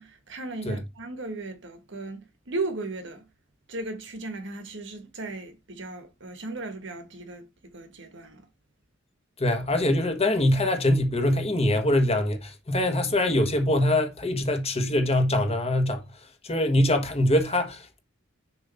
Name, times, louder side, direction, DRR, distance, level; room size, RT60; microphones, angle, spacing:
voice 1, 0.0-3.3 3.7-7.5 7.7-8.5, right 2 dB, 65° right, 1.3 m, -36 dB
voice 2, 9.4-16.0 16.4-18.0, left 1 dB, 30° left, 1.4 m, -23 dB
6.9 x 3.0 x 5.4 m
head